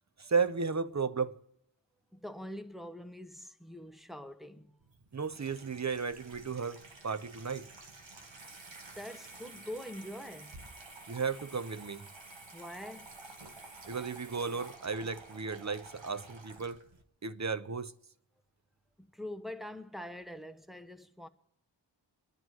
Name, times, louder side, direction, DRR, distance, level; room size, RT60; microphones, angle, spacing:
voice 1, 0.2-1.4 5.1-7.7 11.1-12.1 13.9-16.8 17.2-17.9, right 5 dB, 40° right, 0.7 m, -34 dB
voice 2, 2.1-4.7 8.9-10.6 12.5-13.3 19.0-21.3, left 1 dB, ahead, 1.0 m, -44 dB
Water tap faucet / Sink (filling or washing), 4.8-17.0, right 3 dB, 80° right, 1.7 m, -51 dB
29.5 x 10.5 x 4.7 m
wide cardioid pair, 60°, 45 cm